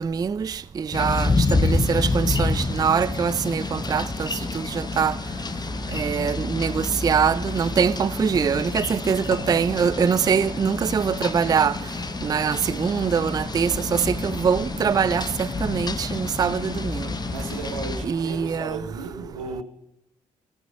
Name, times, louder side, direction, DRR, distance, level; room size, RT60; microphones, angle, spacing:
voice 1, 0.0-5.2 5.9-11.8 12.2-17.1 18.0-18.8, right 6 dB, 25° right, 0.3 m, -23 dB
sound 1, 0.9-18.0, left 3 dB, 25° left, 0.8 m, -28 dB
sound 2, 2.3-18.7, right 3 dB, 70° right, 3.3 m, -45 dB
sound 3, 6.1-7.9 8.3-10.3 11.3-12.2 12.9-13.0, left 6 dB, 75° left, 0.9 m, -45 dB
voice 2, 17.3-19.6, right 4 dB, 90° right, 1.2 m, -34 dB
16.5 x 8.9 x 2.7 m
hypercardioid pair, 40°, 16 cm